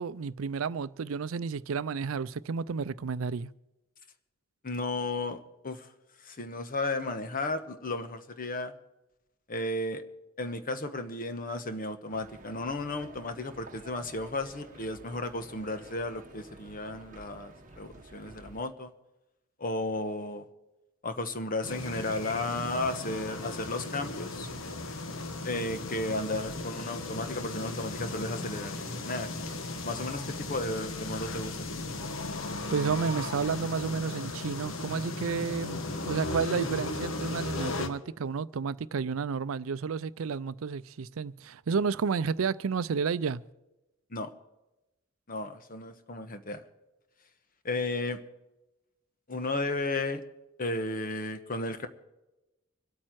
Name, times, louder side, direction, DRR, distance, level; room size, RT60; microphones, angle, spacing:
voice 1, 0.0-3.5 32.7-43.4, right 5 dB, 80° right, 0.5 m, -31 dB
voice 2, 4.6-5.9 6.2-8.7 9.5-10.0 10.4-18.9 19.6-20.4 21.0-24.5 25.4-29.3 29.8-31.8 44.1-44.3 45.3-46.6 47.6-48.2 49.3-50.2 50.6-51.9, left 2 dB, 45° left, 1.1 m, -34 dB
sound 1, 12.1-18.6, right 2 dB, 40° right, 1.1 m, -51 dB
sound 2, 21.6-37.9, left 2 dB, 70° left, 1.2 m, -36 dB
25.5 x 8.7 x 4.7 m
head